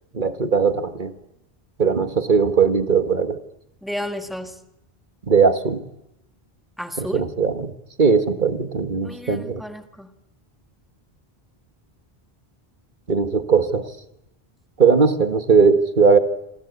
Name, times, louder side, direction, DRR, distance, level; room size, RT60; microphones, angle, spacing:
voice 1, 0.1-1.1 1.8-3.4 5.3-5.8 7.0-7.7 8.0-9.6 13.1-13.9 14.8-16.2, right 5 dB, 50° right, 9 dB, 1.9 m, -19 dB
voice 2, 3.8-4.6 6.8-7.3 9.0-10.1, left 1 dB, ahead, 7 dB, 1.8 m, -32 dB
27.0 x 25.0 x 8.4 m, 0.88 s
omnidirectional pair, 1.0 m